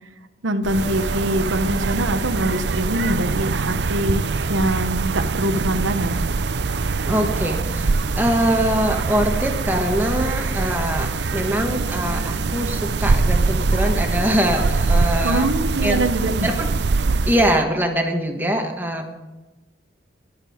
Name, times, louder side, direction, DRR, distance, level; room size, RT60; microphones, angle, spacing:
voice 1, 0.4-4.2 4.5-6.2 15.2-16.5, right 1 dB, 90° right, 6 dB, 1.0 m, -23 dB
sound 1, 0.6-17.6, right 3 dB, 65° right, 0.6 m, -23 dB
voice 2, 7.1-15.5 15.8-16.0 16.4-16.7 17.2-19.1, equal, 10° right, 3 dB, 1.3 m, -23 dB
22.0 x 7.6 x 5.0 m, 1.1 s
head